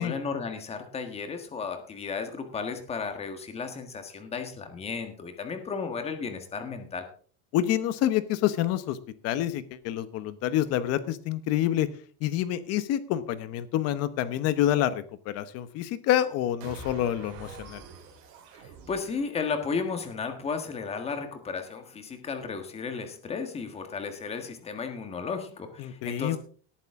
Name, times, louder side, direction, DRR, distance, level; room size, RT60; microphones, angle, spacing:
voice 1, 0.0-7.1 18.6-26.4, left 5 dB, 15° left, 7 dB, 1.6 m, -34 dB
voice 2, 7.5-9.0 9.2-11.9 12.2-17.8 25.8-26.4, left 12 dB, 40° left, 14 dB, 1.1 m, -27 dB
sound 1, 16.6-20.0, right 4 dB, 50° right, 4.7 m, -46 dB
18.0 x 9.1 x 3.7 m, 0.43 s
cardioid pair, 170°, 37 cm